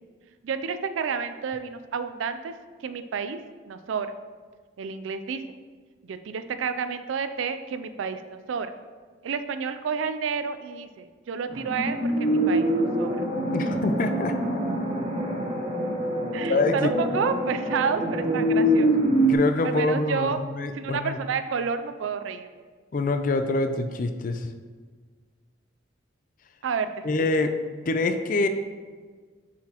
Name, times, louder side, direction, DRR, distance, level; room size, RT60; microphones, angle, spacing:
voice 1, 0.4-2.5 2.8-4.1 4.8-5.4 6.1-8.7 9.2-13.3 16.3-18.9 19.6-20.4 20.7-22.5 26.6-27.0, right 6 dB, 90° right, 10 dB, 0.4 m, -30 dB
sound 1, 11.5-19.3, right 1 dB, 35° right, 1.1 m, -25 dB
voice 2, 13.5-14.3 16.5-16.9 19.3-21.2 22.9-24.5 27.0-27.5 27.9-28.5, left 3 dB, 45° left, 7 dB, 0.4 m, -25 dB
6.9 x 4.9 x 2.9 m, 1.5 s
head